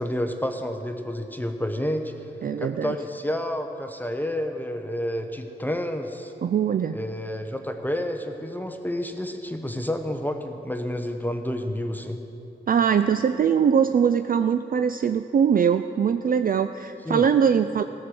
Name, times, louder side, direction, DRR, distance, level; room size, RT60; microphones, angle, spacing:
voice 1, 0.0-2.1 2.6-6.3 6.9-12.2 17.1-17.2, left 1 dB, 10° left, 5 dB, 0.9 m, -29 dB
voice 2, 2.4-3.0 6.4-7.0 12.7-17.8, right 7 dB, 50° right, 10 dB, 0.4 m, -22 dB
14.0 x 6.4 x 7.6 m, 2.9 s
cardioid pair, 45°, 19 cm